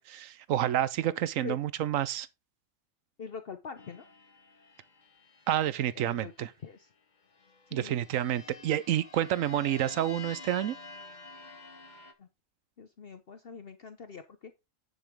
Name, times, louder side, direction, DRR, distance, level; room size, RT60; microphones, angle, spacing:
voice 1, 0.1-2.3 5.5-6.5 7.7-10.8, right 12 dB, 80° right, 1.0 m, -29 dB
voice 2, 3.2-4.1 5.9-6.3 6.6-6.9 7.7-8.0 12.2-12.3 12.8-14.5, left 6 dB, 50° left, 1.0 m, -43 dB
sound 1, 3.8-6.5 7.3-12.1, left 4 dB, 35° left, 1.3 m, -49 dB
10.5 x 6.0 x 3.6 m
omnidirectional pair, 1.4 m